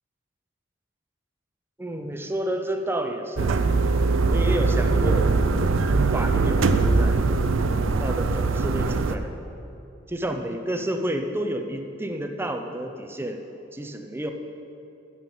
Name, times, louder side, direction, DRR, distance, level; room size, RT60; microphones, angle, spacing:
voice 1, 1.8-3.7 4.3-5.3 5.6-7.1 8.0-9.3 10.1-13.4 13.7-14.3, right 1 dB, 10° right, 5 dB, 0.7 m, -30 dB
sound 1, 3.4-9.1, right 3 dB, 80° right, 0.5 m, -21 dB
9.4 x 7.3 x 7.5 m, 2.7 s
head